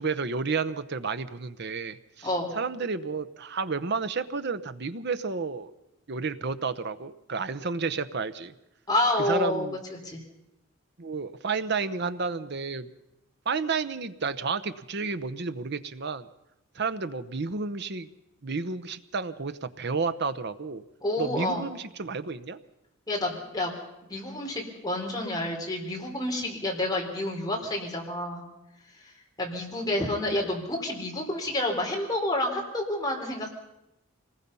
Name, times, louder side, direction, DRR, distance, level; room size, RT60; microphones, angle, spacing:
voice 1, 0.0-2.3 2.6-5.7 6.1-8.5 9.2-9.8 11.0-12.9 13.4-16.3 16.7-18.1 18.4-20.8 21.2-22.6, right 4 dB, 55° right, 12 dB, 0.9 m, -31 dB
voice 2, 2.2-2.5 8.9-10.2 21.0-21.7 23.1-23.7 24.1-28.4 29.4-33.5, left 1 dB, 20° left, -1 dB, 4.1 m, -29 dB
25.5 x 20.0 x 5.5 m, 0.91 s
head